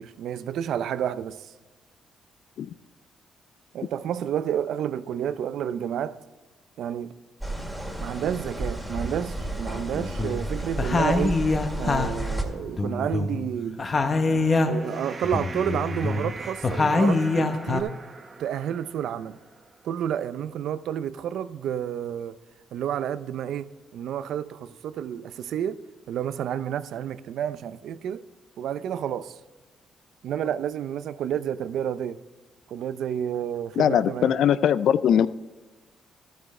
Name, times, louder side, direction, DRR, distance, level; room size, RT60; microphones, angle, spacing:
voice 1, 0.0-1.5 3.7-6.2 6.8-7.2 7.6-7.7 8.0-11.4 11.8-13.8 14.7-18.0 18.4-19.4 19.8-22.4 22.7-25.8 26.1-28.2 28.6-29.4 30.2-32.2 32.7-34.3, right 9 dB, 75° right, 0.5 m, -30 dB
sound 1, 7.4-12.4, right 1 dB, ahead, 2.0 m, -32 dB
sound 2, 9.9-10.5 10.8-13.5 13.8-14.9 15.2-17.8, left 3 dB, 35° left, 0.9 m, -25 dB
sound 3, 13.7-20.2, right 4 dB, 35° right, 0.8 m, -43 dB
voice 2, 33.8-35.3, left 9 dB, 70° left, 0.3 m, -21 dB
12.5 x 9.1 x 3.2 m
cardioid pair, 90°, 0 cm